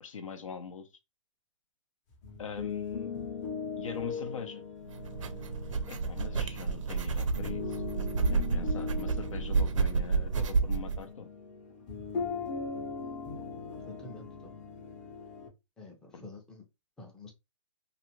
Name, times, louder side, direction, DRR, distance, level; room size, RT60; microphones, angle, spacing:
voice 1, 0.0-0.9 2.4-3.1 3.8-4.6 5.9-7.8 8.2-11.3 16.1-16.2, left 6 dB, 80° left, 0.7 m, -42 dB
sound 1, 2.1-15.5, left 5 dB, 30° left, 0.7 m, -40 dB
sound 2, 4.9-11.0, right 4 dB, 75° right, 0.5 m, -30 dB
voice 2, 13.9-14.5 15.8-16.6 17.0-17.3, left 2 dB, 5° left, 0.4 m, -48 dB
2.6 x 2.4 x 2.8 m
hypercardioid pair, 140°, 17 cm